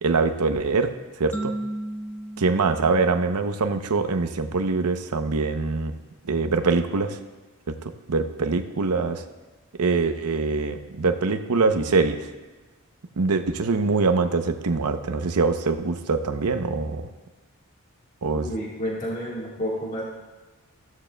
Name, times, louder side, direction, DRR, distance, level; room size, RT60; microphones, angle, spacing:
voice 1, 0.0-0.9 1.2-1.5 2.4-5.9 6.3-7.2 7.7-7.8 8.1-9.2 9.8-12.3 13.2-17.1 18.2-18.5, right 4 dB, 90° right, 8 dB, 0.7 m, -23 dB
sound 1, 1.3-4.0, right 1 dB, 10° left, 0.7 m, -35 dB
voice 2, 18.3-20.0, equal, 35° left, -4 dB, 1.6 m, -30 dB
14.5 x 13.5 x 2.3 m, 1.2 s
head